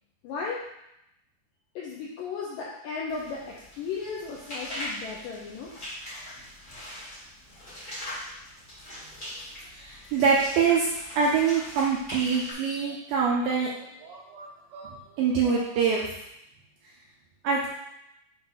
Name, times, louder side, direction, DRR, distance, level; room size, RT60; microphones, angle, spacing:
voice 1, 0.2-0.6 1.8-5.7, left 5 dB, 85° left, -4 dB, 1.9 m, -35 dB
sound 1, 3.1-12.5, equal, 40° left, 0.7 m, -41 dB
voice 2, 9.7-10.9 11.2-13.7 14.0-16.1 17.4-17.7, right 5 dB, 80° right, -3 dB, 2.1 m, -25 dB
7.8 x 2.7 x 5.5 m, 0.82 s
omnidirectional pair, 4.9 m